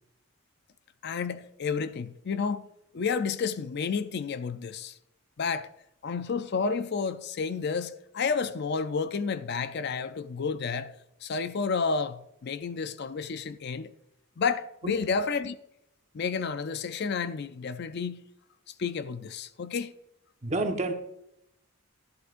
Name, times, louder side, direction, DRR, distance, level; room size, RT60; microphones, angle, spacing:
voice 1, 1.0-2.7 2.9-4.9 5.4-5.7 6.0-10.9 11.2-13.9 14.4-15.6 16.1-18.2 18.8-19.9, left 5 dB, 50° left, 0.4 m, -30 dB
voice 2, 20.4-20.9, right 2 dB, 30° right, 1.1 m, -29 dB
11.5 x 11.0 x 2.5 m
head